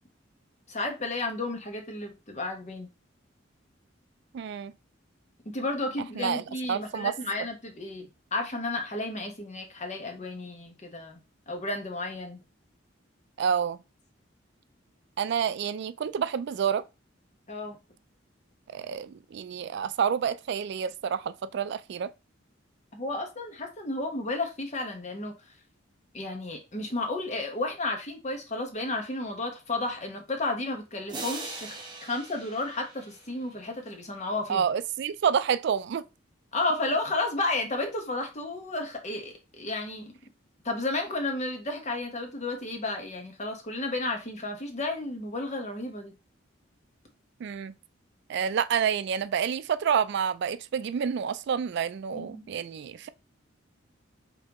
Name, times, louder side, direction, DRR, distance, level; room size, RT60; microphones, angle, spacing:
voice 1, 0.7-2.9 5.4-11.2 11.5-12.4 17.5-17.8 22.9-25.4 26.1-34.6 36.5-40.1 40.6-46.1 52.1-52.5, left 2 dB, 40° left, 1.2 m, -32 dB
voice 2, 4.3-4.7 6.2-7.1 13.4-13.8 15.2-16.8 18.7-22.1 34.5-36.0 47.4-47.7 48.3-53.1, right 7 dB, 60° right, 0.3 m, -28 dB
sound 1, 31.1-33.8, right 3 dB, 25° right, 1.0 m, -41 dB
5.3 x 3.3 x 3.0 m
head